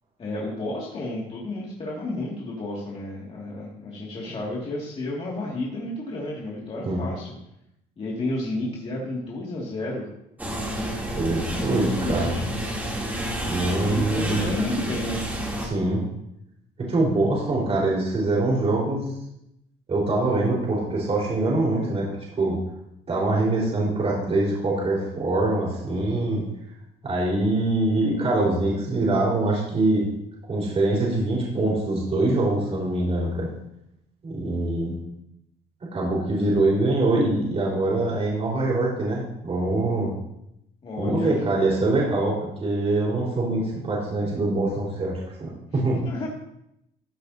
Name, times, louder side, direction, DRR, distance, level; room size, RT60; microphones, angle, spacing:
voice 1, 0.2-7.3 8.0-10.1 11.5-12.4 13.8-15.3 36.4-37.0 40.8-41.4 45.7-46.3, left 2 dB, 35° left, -4 dB, 2.3 m, -31 dB
sound 1, 10.4-15.7, right 1 dB, 10° right, 3.0 m, -29 dB
voice 2, 11.1-12.3 13.4-14.4 15.6-16.0 16.9-19.1 19.9-22.1 22.4-22.6 23.1-26.4 27.0-30.0 30.5-33.5 34.2-34.9 35.9-40.1 41.0-46.0, right 2 dB, 35° right, -4 dB, 4.5 m, -24 dB
15.0 x 8.4 x 2.8 m, 0.81 s
cardioid pair, 110°, 17 cm